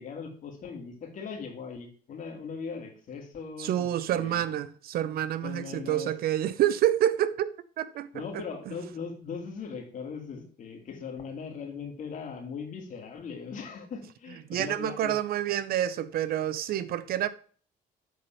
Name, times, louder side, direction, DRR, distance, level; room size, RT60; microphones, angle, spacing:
voice 1, 0.0-4.4 5.4-6.1 8.1-15.2, left 5 dB, 50° left, 2.4 m, -39 dB
voice 2, 3.6-8.2 14.5-17.3, right 11 dB, 65° right, 0.6 m, -28 dB
8.4 x 4.3 x 5.6 m
cardioid pair, 110°, 17 cm